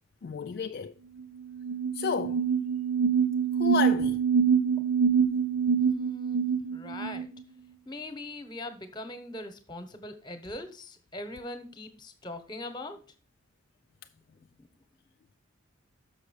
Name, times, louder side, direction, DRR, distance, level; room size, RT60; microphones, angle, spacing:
voice 1, 0.2-0.9 1.9-2.4 3.5-4.2, left 6 dB, 50° left, 0.3 m, -31 dB
sound 1, 1.2-1.3 1.5-7.3, right 7 dB, 80° right, 0.9 m, -25 dB
voice 2, 5.8-7.3 7.8-13.0 14.6-14.7, left 2 dB, 20° left, 1.1 m, -41 dB
6.4 x 5.9 x 6.4 m
head